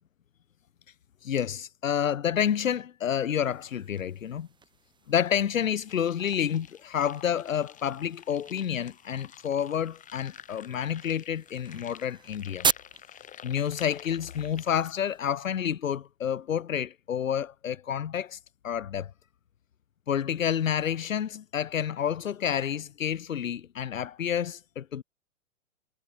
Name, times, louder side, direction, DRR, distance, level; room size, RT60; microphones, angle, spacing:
voice 1, 1.2-4.5 5.1-12.7 13.4-18.4 18.6-19.1 20.1-25.0, left 9 dB, 80° left, 2.2 m, -29 dB
sound 1, 3.4-15.2, right 6 dB, 10° right, 2.3 m, -39 dB
sound 2, 5.8-14.9, left 10 dB, 20° left, 2.5 m, -50 dB
hypercardioid pair, 130°, 39 cm